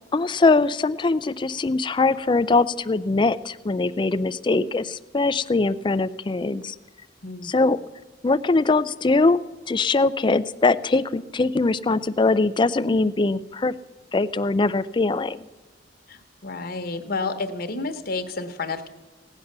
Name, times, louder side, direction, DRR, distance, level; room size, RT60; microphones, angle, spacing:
voice 1, 0.1-6.7 7.4-7.8 8.2-9.4 9.7-13.7 14.1-15.4, left 3 dB, 25° left, 15 dB, 0.4 m, -22 dB
voice 2, 7.2-7.5 16.1-18.9, left 3 dB, 55° left, 8 dB, 1.1 m, -30 dB
17.0 x 9.4 x 6.7 m, 1.2 s
head